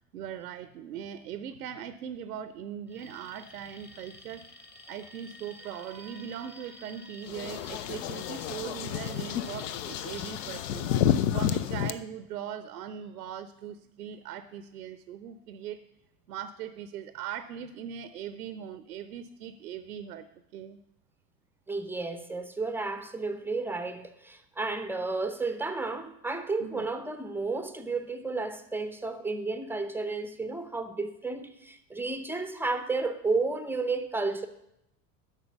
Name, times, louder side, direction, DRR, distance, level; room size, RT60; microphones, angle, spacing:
voice 1, 0.0-15.8 16.3-20.3 20.5-20.8 26.6-26.9, right 9 dB, 70° right, 0.7 m, -40 dB
Alarm, 2.9-10.9, left 1 dB, 20° left, 1.5 m, -51 dB
sound 1, 7.3-11.9, left 10 dB, 55° left, 0.6 m, -30 dB
voice 2, 21.7-34.5, right 3 dB, 5° right, 0.6 m, -32 dB
8.2 x 6.0 x 7.9 m
figure-of-eight pair, 70°, 48 cm